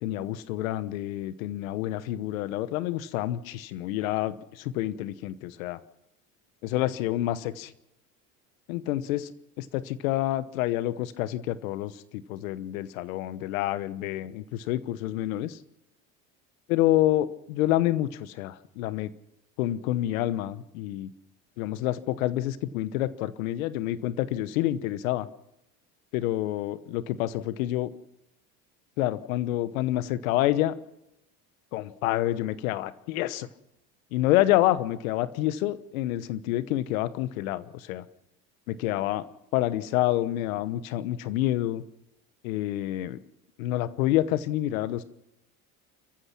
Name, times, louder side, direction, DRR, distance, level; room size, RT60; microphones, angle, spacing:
voice 1, 0.0-5.8 6.6-7.7 8.7-9.3 9.6-15.6 16.7-19.1 19.6-21.1 21.6-25.3 26.1-27.9 29.0-30.8 31.7-33.5 34.1-38.0 38.7-39.2 39.5-41.8 42.4-43.2 43.6-45.0, left 14 dB, 80° left, 16 dB, 1.1 m, -28 dB
30.0 x 14.5 x 6.0 m, 0.88 s
hypercardioid pair, 80°, 40 cm